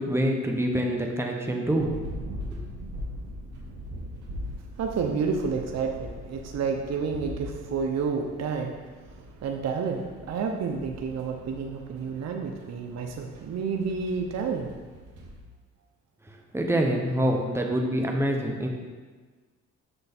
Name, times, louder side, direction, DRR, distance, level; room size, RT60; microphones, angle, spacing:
voice 1, 0.0-2.0 2.5-2.6 16.5-18.7, right 1 dB, 10° right, 1 dB, 1.2 m, -26 dB
sound 1, 1.8-15.4, equal, 75° right, 1.5 m, -41 dB
voice 2, 4.8-8.7 9.4-14.7, right 5 dB, 60° right, 2 dB, 0.9 m, -30 dB
6.9 x 6.5 x 4.3 m, 1.4 s
cardioid pair, 90°, 30 cm